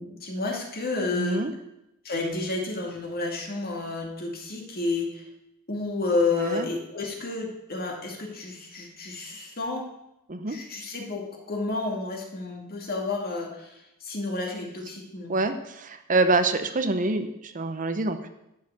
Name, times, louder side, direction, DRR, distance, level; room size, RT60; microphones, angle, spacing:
voice 1, 0.0-1.4 2.0-5.2 5.7-9.9 10.5-13.7 14.0-15.3, left 3 dB, 45° left, 1 dB, 2.4 m, -30 dB
voice 2, 1.1-1.5 6.3-6.7 10.3-10.6 15.3-18.3, right 2 dB, 35° right, 8 dB, 0.8 m, -26 dB
11.5 x 6.6 x 8.3 m, 0.87 s
head